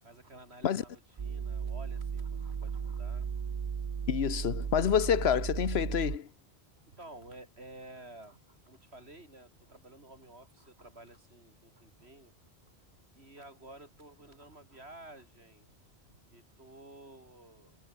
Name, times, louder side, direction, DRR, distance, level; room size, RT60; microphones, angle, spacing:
voice 1, 0.0-3.5 6.0-6.2 6.9-12.3 13.1-15.7 16.1-17.8, right 2 dB, 75° right, 5.7 m, -52 dB
sound 1, 1.2-6.2, right 6 dB, 40° right, 0.6 m, -35 dB
voice 2, 4.1-6.3, left 8 dB, 75° left, 1.1 m, -28 dB
omnidirectional pair, 1.1 m